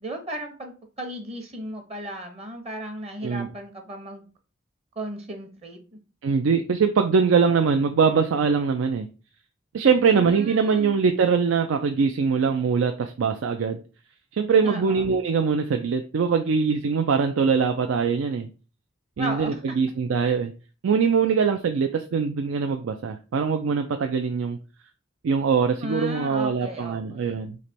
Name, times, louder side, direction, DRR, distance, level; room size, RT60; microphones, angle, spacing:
voice 1, 0.0-4.2 5.0-5.8 10.1-11.0 14.6-15.1 19.2-19.6 25.8-27.4, right 1 dB, 30° right, 5 dB, 0.7 m, -35 dB
voice 2, 6.2-9.1 9.7-13.8 14.3-18.5 19.2-20.5 20.8-24.6 25.2-27.6, right 5 dB, 85° right, 6 dB, 0.4 m, -22 dB
3.2 x 3.0 x 4.1 m, 0.35 s
head